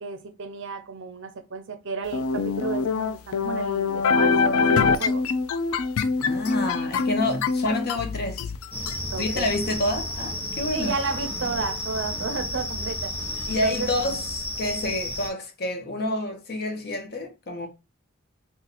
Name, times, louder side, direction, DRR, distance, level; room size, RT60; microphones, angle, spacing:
voice 1, 0.0-5.2 9.1-9.5 10.7-13.1 13.5-13.9, right 4 dB, 60° right, 0.6 m, -32 dB
sound 1, 2.1-9.0, left 5 dB, 85° left, 0.4 m, -24 dB
voice 2, 6.2-8.5 9.2-10.9 13.5-14.2 14.6-17.7, left 1 dB, 50° left, 0.8 m, -28 dB
sound 2, 8.7-15.3, left 1 dB, 10° left, 0.7 m, -32 dB
2.7 x 2.4 x 4.0 m
head